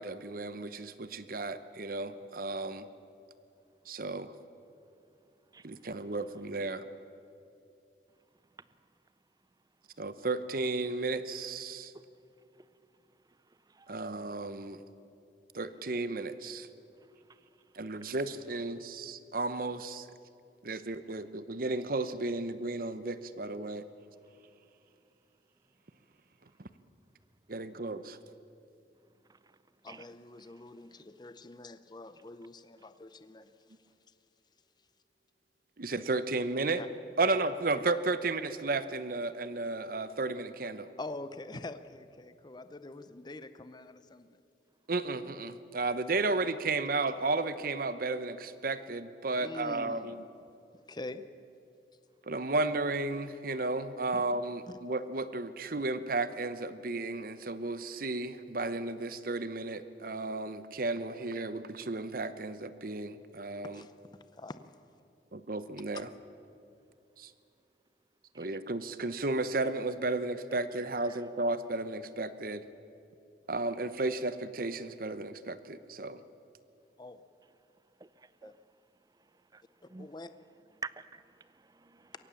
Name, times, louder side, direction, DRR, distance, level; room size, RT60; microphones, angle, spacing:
voice 1, 0.0-2.8 3.9-4.3 5.6-6.8 10.0-11.9 13.9-14.8 15.5-16.7 17.7-20.1 20.6-23.9 27.5-28.2 35.8-36.8 37.2-40.9 44.9-50.2 52.3-63.8 65.3-66.1 67.2-67.3 68.4-72.6 73.5-76.2, right 3 dB, 55° right, 0.9 m, -33 dB
voice 2, 29.8-33.5 36.7-36.9 37.3-37.4 37.7-37.8 41.0-44.4 45.7-45.9 46.4-46.5 49.4-50.2 50.9-51.2 54.1-54.2 54.7-54.8 63.7-63.9 64.3-64.6 65.9-66.0 77.0-77.2 78.4-78.5 80.0-80.3, left 2 dB, 25° left, 0.6 m, -45 dB
voice 3, 78.0-78.5 79.5-79.6 79.9-80.1 80.8-81.3 81.7-82.1, right 4 dB, 20° right, 0.5 m, -46 dB
23.0 x 18.0 x 7.1 m
head